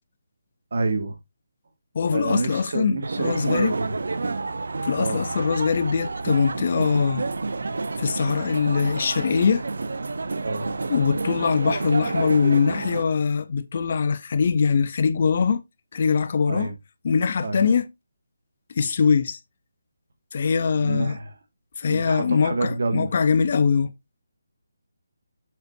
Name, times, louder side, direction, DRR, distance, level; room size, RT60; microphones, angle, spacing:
voice 1, 0.7-1.2 2.1-4.0 5.0-5.2 10.4-10.7 16.5-16.8 17.4-17.7 20.7-21.4 21.9-23.1, right 3 dB, 50° right, 2.0 m, -28 dB
voice 2, 1.9-3.7 4.8-7.3 8.0-9.7 10.9-15.6 15.9-16.7 17.0-17.9 18.8-19.4 20.3-21.2 21.8-23.9, left 5 dB, 35° left, 0.7 m, -22 dB
sound 1, 3.0-13.0, right 3 dB, 65° right, 0.8 m, -29 dB
8.1 x 6.9 x 2.7 m
hypercardioid pair, 175°, 0 cm